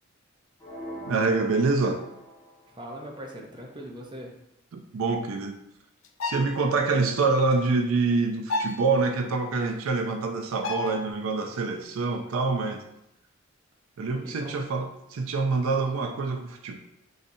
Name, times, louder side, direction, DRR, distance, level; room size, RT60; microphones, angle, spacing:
sound 1, 0.6-2.7, equal, 15° left, 1.2 m, -41 dB
voice 1, 1.1-2.1 4.7-5.6 6.2-12.8 14.0-16.8, right 3 dB, 75° right, 5 dB, 0.4 m, -26 dB
voice 2, 2.7-4.3 14.2-14.6, equal, 20° right, -1 dB, 0.6 m, -40 dB
sound 2, 6.0-6.8 8.5-8.9 10.6-11.1, left 3 dB, 70° left, 0.4 m, -31 dB
4.2 x 3.9 x 2.6 m, 0.82 s
head